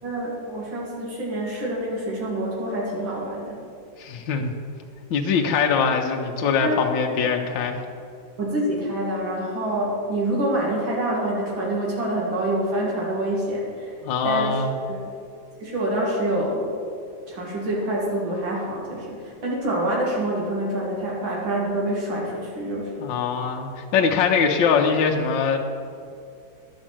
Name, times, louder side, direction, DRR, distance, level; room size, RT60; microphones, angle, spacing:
voice 1, 0.0-3.6 6.6-6.8 8.4-13.9 14.2-14.6 14.9-15.0 15.6-16.7 17.3-23.1, right 1 dB, 85° right, -4 dB, 2.8 m, -26 dB
voice 2, 4.0-4.5 5.1-7.8 14.0-14.7 23.0-25.6, left 6 dB, 75° left, 2 dB, 1.4 m, -22 dB
11.0 x 5.3 x 7.5 m, 2.4 s
omnidirectional pair, 2.1 m